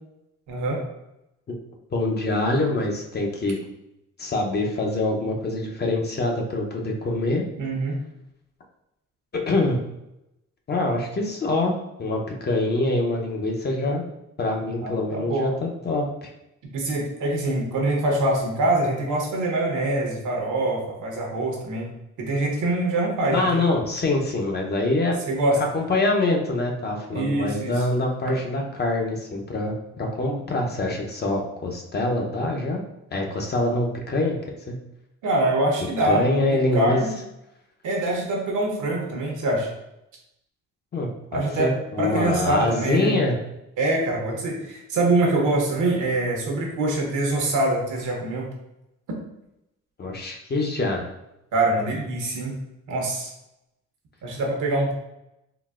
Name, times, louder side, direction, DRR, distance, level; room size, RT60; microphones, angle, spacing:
voice 1, 0.5-0.8 7.6-8.0 14.6-15.5 16.7-21.9 22.2-23.6 25.3-25.6 27.1-27.8 35.2-37.1 37.8-39.7 41.3-43.1 43.8-48.5 51.5-52.5 52.9-53.3 54.2-54.9, right 2 dB, 75° right, 0 dB, 0.9 m, -24 dB
voice 2, 1.9-3.6 4.2-7.4 9.3-9.8 10.7-11.7 12.0-14.0 14.4-16.3 23.3-25.2 25.6-32.8 33.1-34.4 34.7-34.8 36.0-37.0 40.9-43.4 50.0-51.1, left 2 dB, 35° left, 0 dB, 0.6 m, -25 dB
3.8 x 2.1 x 2.3 m, 0.88 s
cardioid pair, 90°, 30 cm